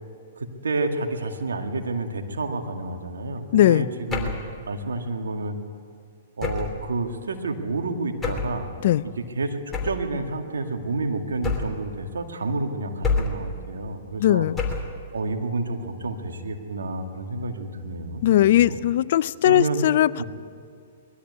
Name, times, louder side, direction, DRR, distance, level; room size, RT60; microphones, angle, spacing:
voice 1, 0.4-4.4 4.7-5.6 6.4-8.7 9.0-14.5 15.1-18.8 19.4-19.8 20.2-20.3, right 2 dB, 85° right, 4 dB, 2.1 m, -29 dB
voice 2, 3.5-3.9 8.8-9.1 14.2-14.6 18.2-20.2, left 13 dB, 60° left, 18 dB, 0.5 m, -19 dB
sound 1, 4.1-4.5 6.4-6.8 8.2-8.6 9.7-10.1 11.4-11.9 13.0-13.5 14.6-15.0, left 4 dB, 15° left, 3.1 m, -27 dB
20.5 x 13.5 x 9.7 m, 2.2 s
hypercardioid pair, 125°, 0 cm